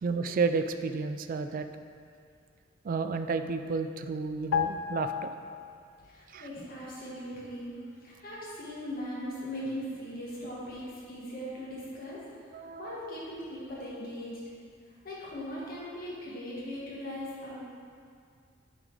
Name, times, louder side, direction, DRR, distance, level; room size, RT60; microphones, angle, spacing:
voice 1, 0.0-1.7 2.8-5.3 6.3-6.5 12.5-13.0, right 4 dB, 45° right, 8 dB, 0.3 m, -31 dB
sound 1, 4.5-6.1 6.4-6.6, left 8 dB, 85° left, 0.4 m, -33 dB
voice 2, 6.0-12.2 12.8-14.4 15.0-17.6, equal, 50° left, -7 dB, 1.8 m, -39 dB
8.9 x 4.0 x 4.8 m, 2.3 s
head